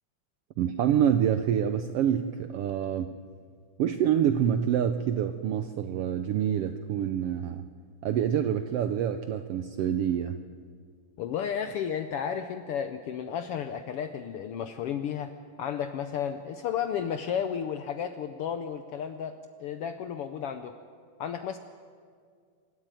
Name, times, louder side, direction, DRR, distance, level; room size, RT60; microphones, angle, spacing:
voice 1, 0.6-3.1 3.8-7.6 8.0-10.4, right 9 dB, 80° right, 10 dB, 1.4 m, -26 dB
voice 2, 11.2-15.3 15.6-20.7 21.2-21.6, left 8 dB, 75° left, 9 dB, 1.3 m, -33 dB
26.0 x 13.0 x 9.1 m, 2.1 s
omnidirectional pair, 3.4 m